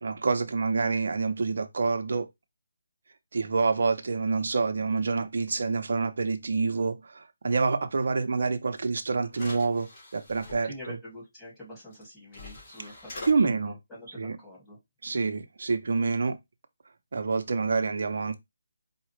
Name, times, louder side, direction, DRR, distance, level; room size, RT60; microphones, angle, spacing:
voice 1, 0.0-2.3 3.3-9.9 10.1-11.0 13.3-13.7 14.2-14.4 15.0-16.4 17.1-18.4, right 4 dB, 60° right, 0.8 m, -27 dB
sound 1, 8.8-8.9 9.3-10.6 11.9-12.0 12.3-13.3, left 2 dB, 30° left, 2.7 m, -43 dB
voice 2, 10.6-14.8, left 1 dB, 5° left, 2.1 m, -46 dB
4.9 x 2.5 x 3.1 m
figure-of-eight pair, 165°, 0 cm